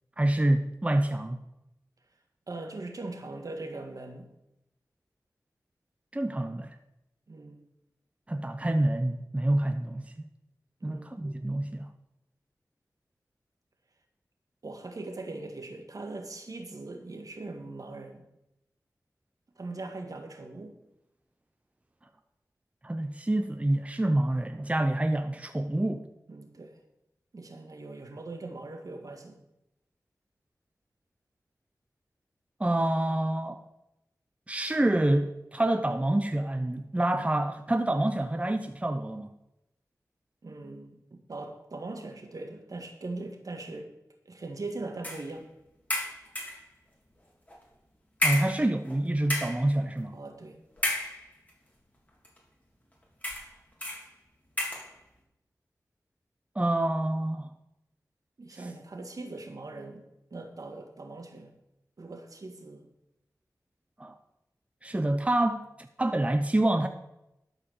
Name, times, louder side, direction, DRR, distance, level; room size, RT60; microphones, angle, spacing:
voice 1, 0.2-1.4 6.1-6.8 8.3-10.1 10.8-11.9 22.8-26.1 32.6-33.6 34.5-39.3 48.2-50.2 56.5-57.5 64.0-64.2 64.8-66.9, right 1 dB, 20° right, 0.8 m, -27 dB
voice 2, 2.5-4.3 7.3-7.6 10.8-11.1 14.6-18.2 19.6-20.8 26.3-26.8 27.3-29.4 40.4-43.9 44.3-45.5 50.1-50.6 58.4-60.1 60.3-61.5 62.0-62.9, right 2 dB, 60° right, 1.8 m, -40 dB
sound 1, 45.0-45.3 45.9-46.7 47.5-47.6 48.2-49.0 49.2-49.7 50.8-51.5 52.2-52.4 53.2-53.5 53.8-54.0 54.6-54.9, left 1 dB, 25° left, 3.3 m, -31 dB
12.5 x 5.0 x 6.5 m
cardioid pair, 50°, 7 cm